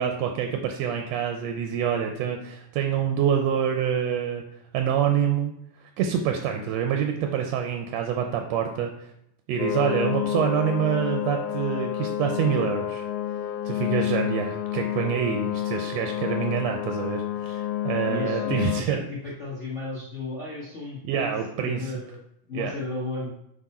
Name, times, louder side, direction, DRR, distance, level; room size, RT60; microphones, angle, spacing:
voice 1, 0.0-4.4 4.7-5.5 6.0-8.9 9.5-13.0 13.7-19.0 21.0-21.9 22.5-22.7, right 8 dB, 75° right, 4 dB, 1.6 m, -26 dB
sound 1, 9.6-18.8, left 11 dB, 80° left, 2.0 m, -29 dB
voice 2, 18.1-23.3, left 3 dB, 40° left, -5 dB, 1.0 m, -34 dB
6.1 x 5.1 x 4.2 m, 0.77 s
omnidirectional pair, 3.5 m